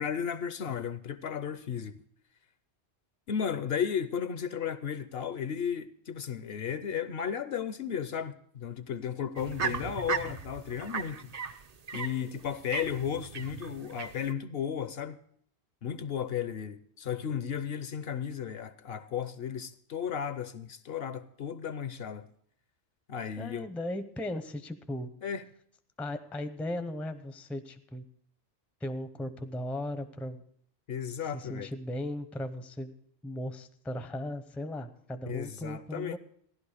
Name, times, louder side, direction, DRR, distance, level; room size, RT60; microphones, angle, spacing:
voice 1, 0.0-2.0 3.3-11.3 11.9-15.2 15.8-22.3 23.1-23.7 25.2-25.4 30.9-31.7 35.3-36.2, left 8 dB, 60° left, 0.8 m, -34 dB
sound 1, 9.4-14.3, right 6 dB, 45° right, 0.6 m, -37 dB
voice 2, 23.4-25.1 26.0-28.0 28.8-30.4 31.3-32.9 33.2-36.2, left 1 dB, ahead, 0.5 m, -37 dB
16.0 x 11.5 x 4.9 m
omnidirectional pair, 1.2 m